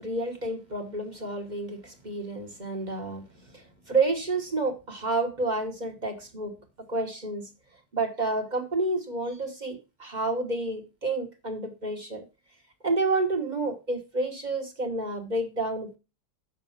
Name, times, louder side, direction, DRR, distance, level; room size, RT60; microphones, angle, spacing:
voice 1, 0.0-3.2 3.5-6.6 6.9-7.5 7.9-12.2 12.8-16.0, right 2 dB, 30° right, 4 dB, 1.2 m, -29 dB
6.9 x 6.4 x 5.7 m, 0.29 s
omnidirectional pair, 1.9 m